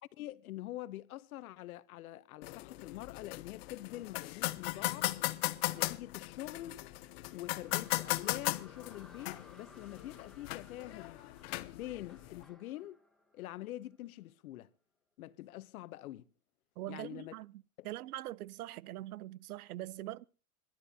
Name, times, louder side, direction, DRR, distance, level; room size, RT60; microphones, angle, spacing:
voice 1, 0.2-5.1 5.7-6.8 7.3-11.2 11.7-13.0 13.3-14.7 15.2-16.3 16.9-17.3 17.8-17.9, left 15 dB, 75° left, 0.8 m, -45 dB
sound 1, 2.4-12.4, left 19 dB, 45° left, 0.6 m, -38 dB
sound 2, 7.0-14.1, left 2 dB, ahead, 1.1 m, -61 dB
voice 2, 16.8-20.2, right 15 dB, 85° right, 0.6 m, -43 dB
27.0 x 12.0 x 2.8 m
supercardioid pair, 150°, 43 cm